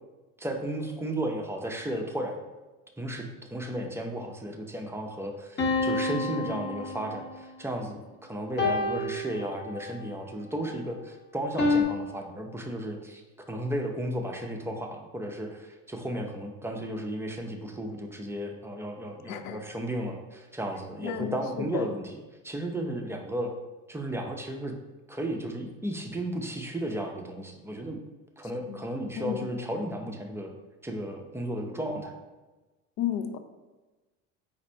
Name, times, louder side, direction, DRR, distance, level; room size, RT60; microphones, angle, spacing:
voice 1, 0.4-2.4 3.0-13.2 13.5-22.1 22.4-23.5 23.9-24.7 25.1-28.0 28.4-30.5 30.8-32.1, right 1 dB, 5° right, 2 dB, 0.6 m, -34 dB
sound 1, 5.6-7.4 8.6-10.0 11.6-11.8, left 2 dB, 30° left, 0.9 m, -28 dB
voice 2, 19.3-19.6 21.0-21.9 28.7-28.8 29.1-29.4 33.0-33.4, left 9 dB, 55° left, 9 dB, 0.5 m, -32 dB
4.1 x 2.7 x 4.3 m, 1.2 s
supercardioid pair, 85°, 34 cm